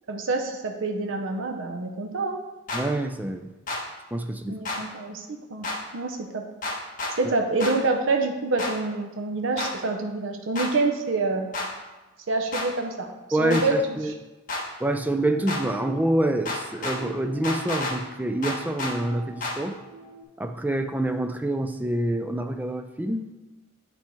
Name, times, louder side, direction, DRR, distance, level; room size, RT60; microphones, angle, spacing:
voice 1, 0.1-2.4 4.5-5.7 5.9-6.4 7.2-11.5 12.3-13.1 13.4-13.8 14.0-14.1, right 3 dB, 70° right, 4 dB, 0.7 m, -27 dB
sound 1, 2.7-2.8 3.7-3.8 4.7-4.8 5.6-5.8 6.6-7.1 7.6-7.7 8.6-8.7 9.6-9.7 10.6-10.7 11.5-11.7 12.5-12.7 13.5-13.6 14.5-14.6 15.5-15.6 16.5-17.0 17.4-17.9 18.4-18.9 19.4-19.6, left 2 dB, 40° left, 1.3 m, -29 dB
voice 2, 2.7-3.5 4.1-4.6 13.3-14.1 14.8-19.8 20.4-23.3, right 1 dB, 10° right, 7 dB, 0.3 m, -26 dB
sound 2, 14.9-20.2, right 2 dB, 10° left, 1.1 m, -42 dB
9.2 x 3.5 x 4.4 m, 1.1 s
head